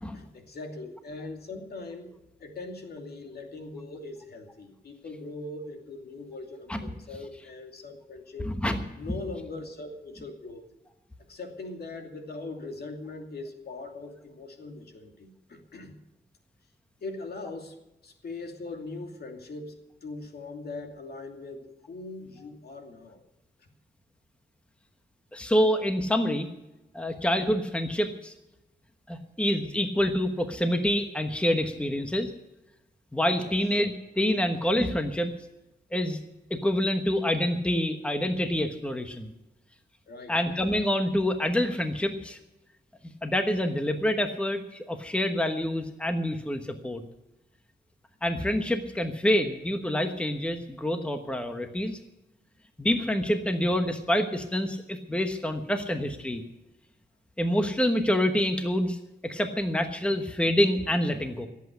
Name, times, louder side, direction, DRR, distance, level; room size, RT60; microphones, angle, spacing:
voice 1, 0.1-2.1 2.4-8.5 8.9-10.6 11.3-15.9 17.0-17.7 18.0-23.2 23.6-23.7 33.4-33.6 40.1-40.3, left 3 dB, 65° left, 3 dB, 2.7 m, -41 dB
voice 2, 8.4-8.8 25.3-26.5 26.9-28.3 29.1-32.3 33.1-35.3 35.9-36.2 36.5-39.3 40.3-42.4 43.2-47.0 48.2-52.0 52.8-56.4 57.4-59.0 59.2-61.5, left 1 dB, 5° left, 6 dB, 1.1 m, -27 dB
16.5 x 8.3 x 8.2 m, 0.97 s
wide cardioid pair, 135°, 17 cm